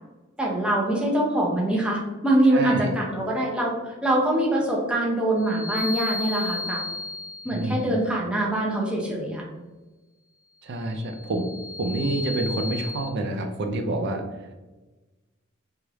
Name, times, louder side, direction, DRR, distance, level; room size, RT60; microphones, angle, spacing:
voice 1, 0.4-6.8 7.4-9.4, right 1 dB, 5° right, -3 dB, 0.6 m, -24 dB
voice 2, 2.5-2.9 7.5-8.0 10.6-11.5 11.8-14.5, right 2 dB, 55° right, 5 dB, 0.4 m, -28 dB
sound 1, 5.4-8.0 10.9-13.0, left 3 dB, 40° left, 0.8 m, -34 dB
3.1 x 2.4 x 2.9 m, 1.2 s
head